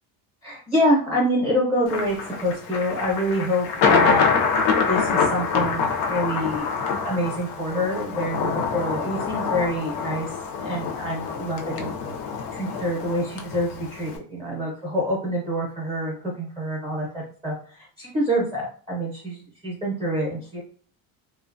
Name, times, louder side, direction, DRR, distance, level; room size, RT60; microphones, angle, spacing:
voice 1, 0.4-4.2 4.9-6.7 7.0-10.3 10.6-11.9 12.5-20.6, equal, 15° right, -4 dB, 0.6 m, -26 dB
Thunder, 1.9-14.2, left 5 dB, 55° left, 0.5 m, -25 dB
2.7 x 2.2 x 2.5 m, 0.44 s
cardioid pair, 175°, 44 cm